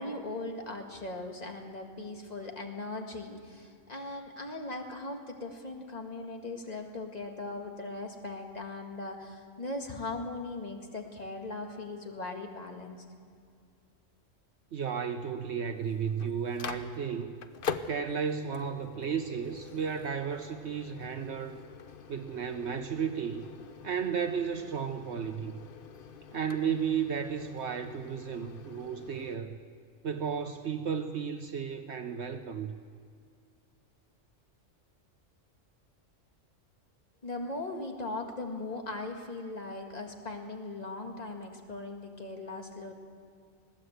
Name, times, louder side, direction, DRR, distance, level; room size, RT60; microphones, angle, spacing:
voice 1, 0.0-13.0 37.2-42.9, left 2 dB, 30° left, 3 dB, 2.0 m, -39 dB
voice 2, 14.7-17.3 17.9-21.6 22.1-23.5 23.8-25.5 26.3-29.5 30.0-32.7, right 7 dB, 60° right, 7 dB, 1.1 m, -33 dB
Microwave oven, 15.7-29.4, left 6 dB, 50° left, 0.9 m, -44 dB
20.5 x 16.0 x 8.0 m, 2.2 s
omnidirectional pair, 1.3 m